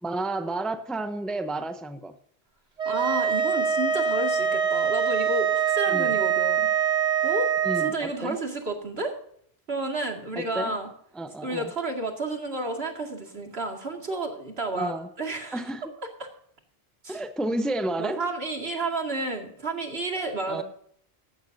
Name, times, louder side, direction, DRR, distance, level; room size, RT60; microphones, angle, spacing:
voice 1, 0.0-2.1 5.9-6.2 7.6-8.4 10.3-10.8 11.1-11.7 14.7-15.1 15.5-15.9 17.1-18.2 20.5-20.6, right 1 dB, ahead, 0.7 m, -31 dB
sound 1, 2.8-7.9, right 7 dB, 40° right, 1.3 m, -24 dB
voice 2, 2.8-6.7 7.2-7.5 7.8-9.1 9.7-10.9 11.4-14.9 15.2-15.6 16.2-16.3 17.0-17.2 18.0-20.6, right 2 dB, 75° right, 2.5 m, -31 dB
15.5 x 12.5 x 2.7 m
omnidirectional pair, 1.1 m